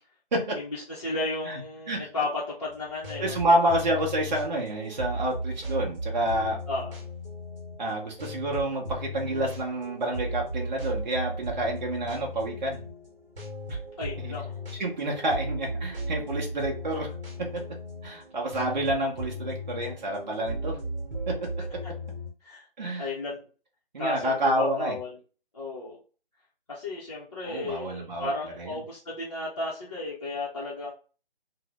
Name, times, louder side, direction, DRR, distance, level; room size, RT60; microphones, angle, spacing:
voice 1, 0.6-3.4 6.7-6.9 14.0-14.6 22.4-22.6 23.0-23.4 24.0-25.2 25.5-26.0 26.7-30.9, left 2 dB, 30° left, -9 dB, 0.6 m, -33 dB
sound 1, 2.6-22.3, equal, 65° right, 1.0 m, -36 dB
voice 2, 3.2-6.6 7.8-12.8 13.7-13.8 14.2-14.3 14.8-17.1 17.4-17.5 18.0-20.8 21.3-21.5 22.8-23.1 23.9-25.0 27.4-28.8, right 1 dB, 50° right, -1 dB, 0.7 m, -28 dB
2.6 x 2.0 x 3.1 m, 0.37 s
figure-of-eight pair, 145°, 30 cm